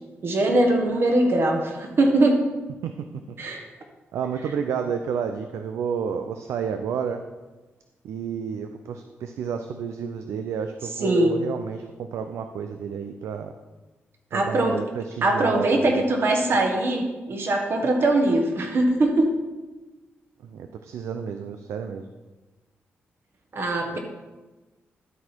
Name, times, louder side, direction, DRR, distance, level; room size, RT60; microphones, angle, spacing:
voice 1, 0.2-2.4 3.4-3.7 11.0-11.3 14.3-14.8 15.2-19.3 23.5-24.0, right 2 dB, 55° right, 3 dB, 1.5 m, -21 dB
voice 2, 4.1-7.2 8.0-13.5 14.3-16.0 20.4-22.1 23.9-24.0, right 7 dB, 85° right, 7 dB, 0.5 m, -31 dB
12.0 x 4.2 x 4.4 m, 1.2 s
cardioid pair, 65°, 5 cm